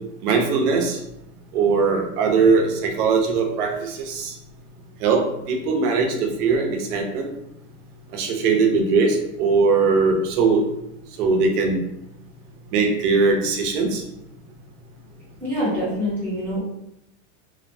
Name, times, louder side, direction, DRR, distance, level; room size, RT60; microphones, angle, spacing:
voice 1, 0.2-1.0 1.5-4.3 5.0-7.3 8.1-10.7 11.2-11.8 12.7-14.0, right 4 dB, 85° right, 2 dB, 0.7 m, -20 dB
voice 2, 15.4-16.6, equal, 5° left, -11 dB, 0.5 m, -25 dB
2.8 x 2.1 x 2.6 m, 0.83 s
supercardioid pair, 175°, 45 cm